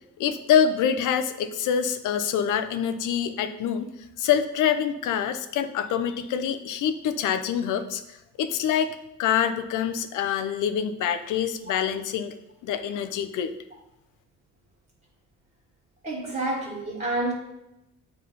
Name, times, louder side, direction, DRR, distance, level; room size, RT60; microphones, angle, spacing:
voice 1, 0.2-3.9 4.2-12.3 12.6-13.5, left 8 dB, 85° left, 10 dB, 0.7 m, -25 dB
voice 2, 16.0-17.3, right 2 dB, 30° right, -4 dB, 1.8 m, -28 dB
7.5 x 4.2 x 5.3 m, 0.89 s
cardioid pair, 90°, 30 cm